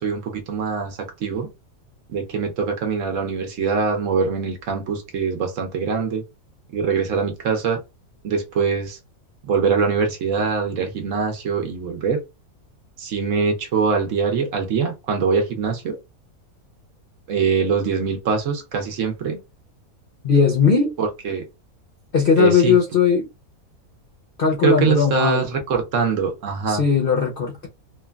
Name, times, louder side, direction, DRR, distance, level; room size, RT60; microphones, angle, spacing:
voice 1, 0.0-1.5 2.1-6.2 6.7-7.8 8.2-9.0 9.5-12.2 13.0-16.0 17.3-19.4 21.0-21.4 22.4-22.8 24.6-26.8, right 5 dB, 65° right, 1.0 m, -23 dB
voice 2, 20.2-20.9 22.1-23.3 24.4-25.5 26.7-27.7, left 6 dB, 55° left, 0.6 m, -18 dB
3.1 x 2.2 x 2.2 m
omnidirectional pair, 1.6 m